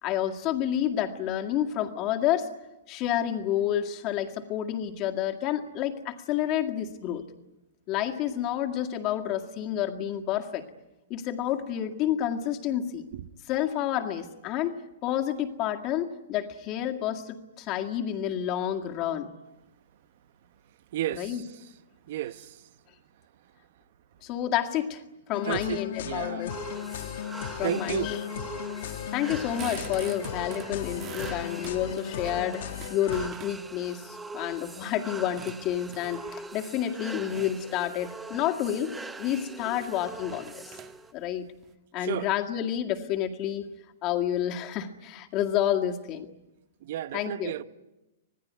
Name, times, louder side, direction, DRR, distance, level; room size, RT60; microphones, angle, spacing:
voice 1, 0.0-2.5 2.9-7.2 7.9-10.7 11.1-13.1 13.5-19.3 21.2-21.4 24.2-26.5 27.6-28.2 29.1-40.8 41.1-41.5 41.9-43.7 44.0-46.3 47.1-47.5, left 11 dB, 25° left, 2.0 m, -29 dB
voice 2, 20.9-21.7 22.0-22.7 25.4-26.6 27.6-28.2 42.0-42.3 46.8-47.6, right 12 dB, 50° right, 0.9 m, -33 dB
sound 1, 25.3-33.3, left 9 dB, 60° left, 1.2 m, -36 dB
sound 2, 26.5-41.1, right 3 dB, 5° right, 0.8 m, -43 dB
sound 3, 29.3-33.9 34.4-36.5 37.2-37.7 38.1-38.5 38.9-39.0 39.2-39.3 39.7-41.7, right 9 dB, 25° right, 1.5 m, -46 dB
26.0 x 19.5 x 9.5 m
hypercardioid pair, 170°, 0 cm